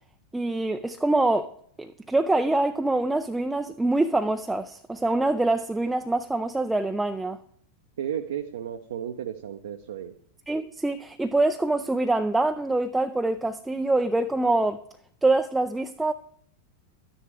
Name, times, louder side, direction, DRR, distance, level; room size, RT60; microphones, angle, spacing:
voice 1, 0.3-1.5 1.8-7.4 10.5-14.8 15.2-16.1, right 2 dB, 5° right, 0.4 m, -25 dB
voice 2, 8.0-10.1, right 9 dB, 60° right, 0.7 m, -33 dB
12.5 x 10.0 x 3.3 m
figure-of-eight pair, 90°, 0 cm